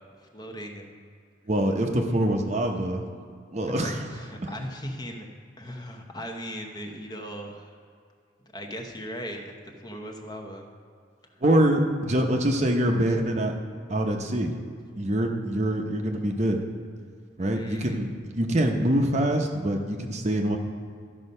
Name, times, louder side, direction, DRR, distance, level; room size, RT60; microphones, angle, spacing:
voice 1, 0.3-1.0 3.7-5.3 5.6-7.7 8.5-10.7 17.5-18.0, equal, 20° left, 2 dB, 0.9 m, -38 dB
voice 2, 1.5-3.0 3.5-4.1 4.4-4.5 11.4-13.5 13.9-14.5 15.0-16.6 17.4-20.6, right 1 dB, 35° right, 3 dB, 0.8 m, -24 dB
13.5 x 5.4 x 5.4 m, 2.2 s
head